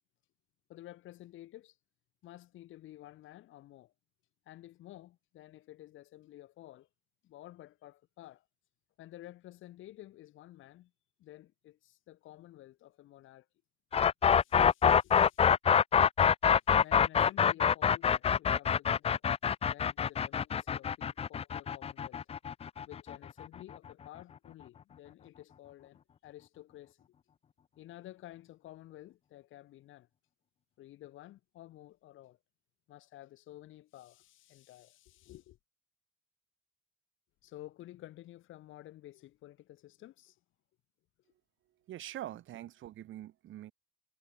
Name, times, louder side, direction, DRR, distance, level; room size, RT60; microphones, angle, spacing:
voice 1, 0.7-1.8 2.2-3.9 4.4-6.9 7.2-8.5 9.0-10.9 11.2-13.5 14.3-15.5 16.6-19.2 19.7-22.2 22.8-27.0 27.8-30.1 30.8-32.4 32.9-35.6 37.4-40.4, left 15 dB, 85° left, 1.7 m, -52 dB
sound 1, 13.9-23.8, left 7 dB, 30° left, 0.4 m, -26 dB
voice 2, 41.9-43.7, right 13 dB, 80° right, 3.0 m, -44 dB
cardioid pair, 90°, 20 cm